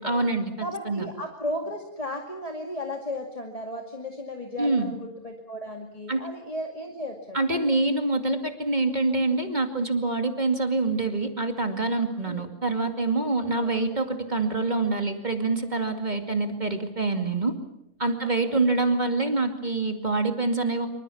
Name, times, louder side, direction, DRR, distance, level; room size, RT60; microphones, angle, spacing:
voice 1, 0.0-1.1 4.6-4.9 6.1-6.2 7.3-17.5 18.0-20.9, right 3 dB, 30° right, 6 dB, 2.5 m, -26 dB
voice 2, 0.6-7.6 12.3-12.5 13.5-14.0 18.4-19.0, left 1 dB, 25° left, 3 dB, 2.3 m, -35 dB
26.0 x 25.0 x 7.1 m, 0.80 s
omnidirectional pair, 1.5 m